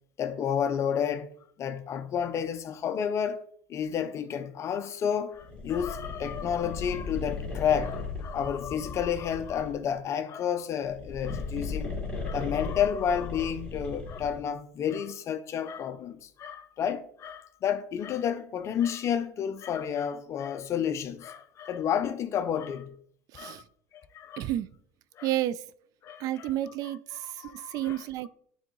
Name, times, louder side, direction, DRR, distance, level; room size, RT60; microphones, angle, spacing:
voice 1, 0.2-3.4 3.7-12.0 12.2-22.9 23.3-23.6 24.1-24.5 25.2-25.3 26.0-26.5 27.1-28.0, left 8 dB, 40° left, 0.5 m, -31 dB
sound 1, 5.4-9.9 10.8-14.5, left 3 dB, 15° left, 2.4 m, -37 dB
voice 2, 23.3-23.6 24.4-24.7 25.2-25.6 26.2-28.3, right 13 dB, 55° right, 0.4 m, -31 dB
9.2 x 3.5 x 3.1 m
supercardioid pair, 100°, 7 cm